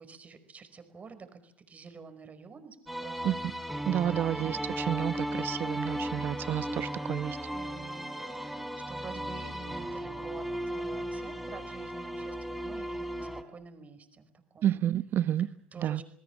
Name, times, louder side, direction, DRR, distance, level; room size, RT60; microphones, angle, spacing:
voice 1, 0.0-3.4 4.2-4.5 7.5-14.7 15.4-16.0, right 5 dB, 30° right, 5.2 m, -49 dB
sound 1, 2.9-13.4, right 1 dB, ahead, 3.5 m, -36 dB
voice 2, 3.9-7.4 14.6-15.5 15.8-16.0, right 11 dB, 45° right, 0.9 m, -30 dB
28.5 x 20.5 x 7.2 m
hypercardioid pair, 75°, 5 cm